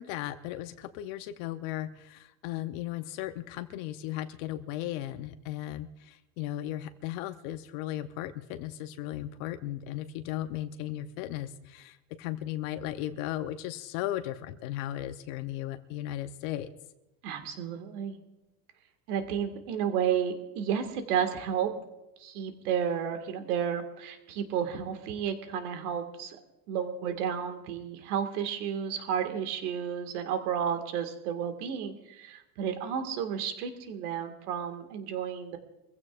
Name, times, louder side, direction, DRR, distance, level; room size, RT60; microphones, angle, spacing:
voice 1, 0.0-16.7, left 13 dB, 60° left, 9 dB, 0.8 m, -36 dB
voice 2, 17.2-18.2 19.1-21.7 22.2-26.4 26.7-35.6, right 8 dB, 75° right, 7 dB, 2.0 m, -32 dB
24.0 x 15.5 x 2.5 m, 0.97 s
supercardioid pair, 145°, 46 cm